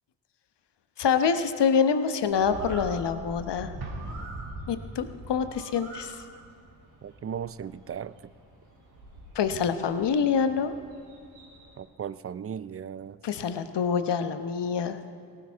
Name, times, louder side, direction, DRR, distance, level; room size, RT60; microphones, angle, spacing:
voice 1, 1.0-3.7 4.7-6.2 9.3-10.7 13.2-15.0, left 6 dB, 60° left, 9 dB, 1.1 m, -26 dB
Bird, 2.2-11.8, right 1 dB, 90° right, 3.9 m, -44 dB
Explosion, 3.8-5.4, right 3 dB, 50° right, 2.3 m, -43 dB
voice 2, 7.0-8.1 11.8-13.2, right 8 dB, 30° right, 17 dB, 0.5 m, -36 dB
18.5 x 15.5 x 3.6 m, 2.5 s
hypercardioid pair, 40°, 46 cm